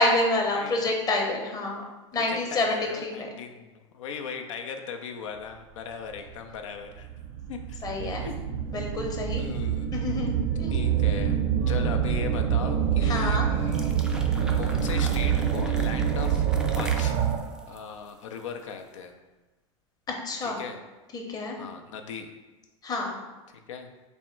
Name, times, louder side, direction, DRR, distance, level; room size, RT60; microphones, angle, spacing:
voice 1, 0.0-1.8 2.1-3.3 7.8-8.2 8.7-9.4 9.9-10.9 13.0-13.4 20.2-20.6 21.1-21.6 22.8-23.2, left 2 dB, 25° left, 1 dB, 0.7 m, -27 dB
voice 2, 0.5-0.9 2.1-7.1 7.5-8.7 9.4-10.2 10.7-11.4 11.7-13.8 14.5-16.4 16.7-17.2 17.7-19.1 20.4-20.8 21.6-22.3 23.5-23.9, left 6 dB, 80° left, 5 dB, 0.4 m, -38 dB
sound 1, 6.2-6.3 7.0-17.6, right 8 dB, 55° right, 0.6 m, -26 dB
sound 2, 11.6-15.0, right 3 dB, 85° right, 1.1 m, -44 dB
sound 3, 13.6-18.8, right 1 dB, 5° right, 0.3 m, -41 dB
3.4 x 2.1 x 4.3 m, 1.1 s
hypercardioid pair, 105°, 16 cm